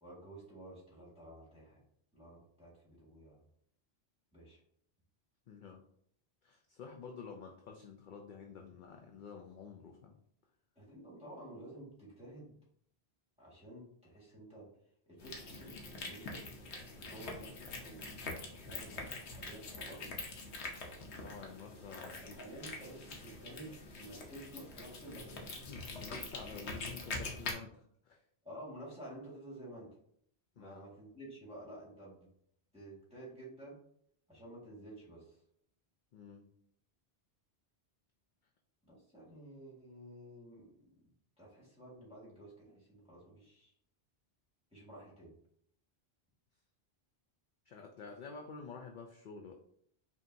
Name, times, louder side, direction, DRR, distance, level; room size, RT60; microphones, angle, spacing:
voice 1, 0.0-1.8 2.1-3.4 4.3-4.6 10.7-12.6 13.4-14.7 15.1-16.4 16.9-18.1 18.6-20.1 22.0-25.4 28.4-29.9 30.6-32.3 32.7-33.8 34.3-35.4 38.8-40.9 41.4-43.7 44.7-45.3, right 1 dB, 5° right, -5 dB, 1.6 m, -51 dB
voice 2, 5.5-5.8 6.4-10.1 21.1-22.4 25.6-28.2 30.6-30.8 36.1-36.5 47.7-49.6, left 5 dB, 60° left, 2 dB, 0.6 m, -50 dB
sound 1, 15.2-27.5, left 3 dB, 90° left, 1.1 m, -45 dB
5.2 x 2.7 x 2.6 m, 0.66 s
omnidirectional pair, 1.1 m